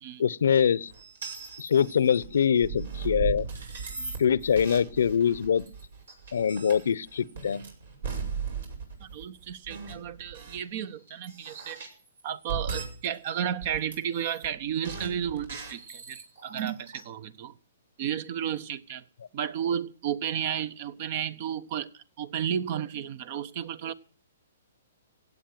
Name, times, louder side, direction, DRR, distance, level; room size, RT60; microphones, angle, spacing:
voice 1, 0.2-0.9 1.6-3.5 4.2-5.7 6.3-7.6, left 7 dB, 75° left, 0.8 m, -24 dB
sound 1, 0.9-10.6 11.1-13.3 13.6-14.5 14.8-17.0, right 5 dB, 75° right, 6.2 m, -38 dB
voice 2, 9.0-11.8 12.2-17.6 18.0-19.0 19.3-23.9, right 9 dB, 45° right, 1.0 m, -33 dB
16.5 x 8.6 x 7.8 m
hypercardioid pair, 140°, 0 cm